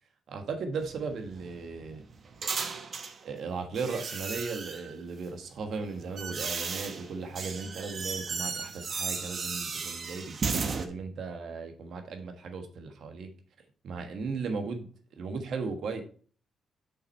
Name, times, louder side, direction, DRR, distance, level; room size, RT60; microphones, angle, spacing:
voice 1, 0.3-2.0 3.2-13.3 13.8-14.9 15.2-16.0, right 4 dB, 65° right, 6 dB, 1.4 m, -36 dB
sound 1, 0.8-3.2 3.8-5.0 5.7-10.9, right 5 dB, 50° right, 0.9 m, -35 dB
6.7 x 5.7 x 4.4 m, 0.42 s
cardioid pair, 100°, 0 cm